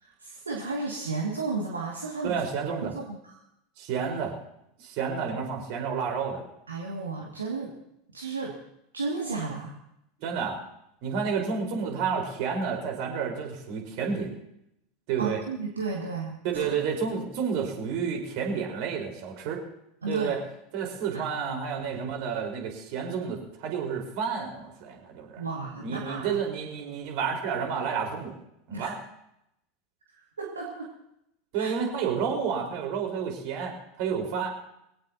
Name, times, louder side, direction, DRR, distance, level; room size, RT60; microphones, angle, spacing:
voice 1, 0.0-2.4 2.8-3.3 6.7-7.7 8.1-8.6 8.9-9.8 15.2-16.6 20.0-20.3 21.1-21.2 25.4-26.4 28.7-28.9 30.4-30.9 31.6-31.8, right 4 dB, 80° right, -1 dB, 2.2 m, -33 dB
voice 2, 2.2-2.9 3.8-4.4 4.8-6.4 10.2-10.6 11.0-14.4 15.1-15.4 16.4-19.6 20.1-20.4 20.7-25.4 25.8-28.3 28.7-29.0 31.5-34.5, right 6 dB, 50° right, 2 dB, 4.6 m, -30 dB
23.0 x 17.5 x 2.9 m, 0.79 s
figure-of-eight pair, 80°, 0 cm